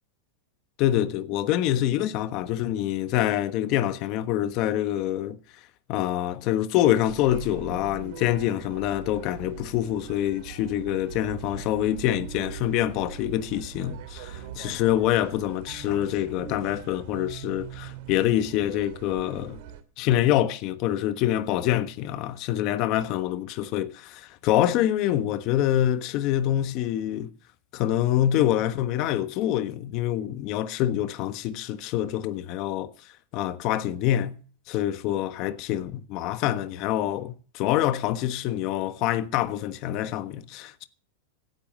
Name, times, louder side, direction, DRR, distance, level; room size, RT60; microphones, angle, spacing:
voice 1, 0.8-5.4 5.9-19.6 20.0-27.3 27.7-32.9 33.3-34.4 34.7-40.8, left 12 dB, 45° left, 1.2 m, -26 dB
sound 1, 7.1-19.8, right 9 dB, 60° right, 2.5 m, -41 dB
16.5 x 10.0 x 6.2 m
supercardioid pair, 140°, 0 cm